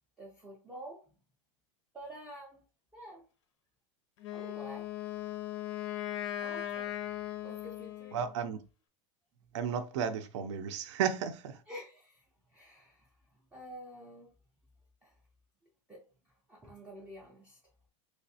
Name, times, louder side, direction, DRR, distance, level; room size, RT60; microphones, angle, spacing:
voice 1, 0.2-1.1 1.9-2.6 2.9-3.3 4.3-4.9 6.4-7.0 7.4-8.2 11.7-12.2 12.5-13.1 13.5-14.3 15.0-15.1 15.9-16.0 16.5-17.6, equal, 5° right, 0.4 m, -48 dB
Wind instrument woodwind instrument, 4.2-8.3, left 12 dB, 60° left, 0.6 m, -38 dB
voice 2, 8.1-8.6 9.5-11.6, right 7 dB, 65° right, 0.5 m, -33 dB
3.3 x 3.1 x 2.7 m
supercardioid pair, 170°, 16 cm